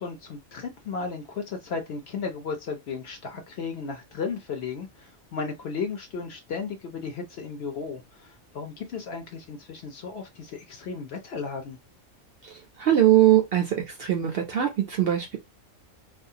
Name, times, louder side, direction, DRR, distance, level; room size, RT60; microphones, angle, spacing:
voice 1, 0.0-11.8, left 5 dB, 60° left, 0.7 m, -35 dB
voice 2, 12.8-15.4, right 12 dB, 60° right, 0.6 m, -21 dB
2.4 x 2.3 x 2.7 m
omnidirectional pair, 1.4 m